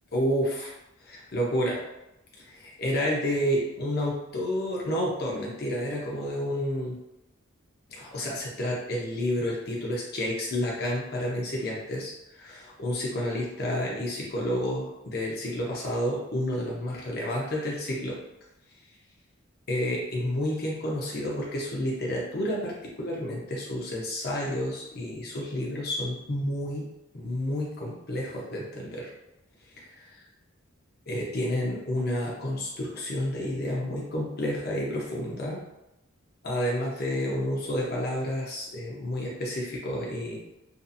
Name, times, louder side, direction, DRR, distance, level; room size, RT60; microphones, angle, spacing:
voice 1, 0.1-0.7 1.0-1.8 2.5-7.0 7.9-18.2 19.7-26.9 27.1-29.1 30.0-30.2 31.1-35.6 36.4-40.4, left 1 dB, 50° left, -3 dB, 0.7 m, -30 dB
2.7 x 2.5 x 2.5 m, 0.91 s
head